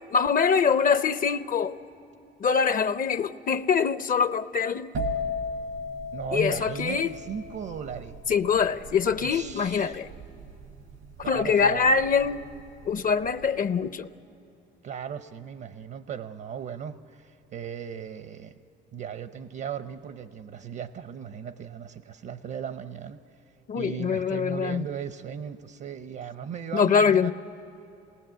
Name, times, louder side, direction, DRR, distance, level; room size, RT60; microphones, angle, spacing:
voice 1, 0.1-1.8 2.4-4.9 6.3-7.1 8.3-10.1 11.3-12.4 12.9-14.1 23.7-24.8 26.7-27.3, left 6 dB, 40° left, 0.6 m, -24 dB
sound 1, 4.9-12.5 12.8-13.3, left 2 dB, 85° right, 1.8 m, -35 dB
voice 2, 6.1-8.2 9.2-10.0 11.2-12.0 14.8-18.6 18.9-23.2 23.8-27.3, right 8 dB, 60° right, 0.7 m, -37 dB
27.5 x 19.5 x 7.7 m
cardioid pair, 100°, 21 cm